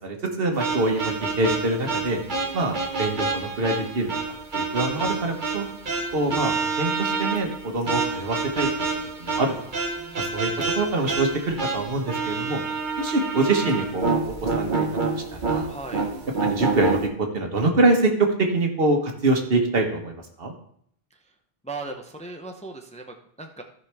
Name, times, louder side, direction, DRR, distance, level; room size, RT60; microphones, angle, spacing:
voice 1, 0.0-2.2 2.5-5.7 6.1-8.7 8.9-9.5 10.2-12.6 13.0-14.9 15.3-15.7 16.4-20.5, right 2 dB, 65° right, 3 dB, 1.5 m, -25 dB
sound 1, 0.6-17.1, right 4 dB, 50° right, 1.2 m, -28 dB
voice 2, 4.7-5.0 10.0-10.3 15.7-16.0 21.6-23.6, right 3 dB, 10° left, 4 dB, 0.6 m, -38 dB
15.0 x 5.3 x 3.4 m, 0.66 s
omnidirectional pair, 1.0 m